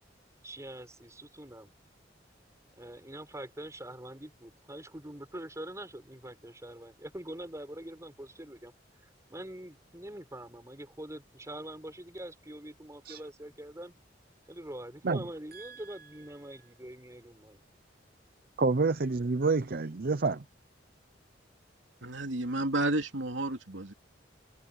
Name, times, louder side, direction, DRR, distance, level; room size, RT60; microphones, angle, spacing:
voice 1, 0.4-1.7 2.7-8.7 9.0-13.9 14.5-17.6, right 1 dB, 15° right, 6.4 m, -44 dB
voice 2, 18.6-20.4, right 3 dB, 55° right, 0.6 m, -28 dB
voice 3, 22.0-23.9, right 2 dB, 80° right, 2.9 m, -31 dB
open air
head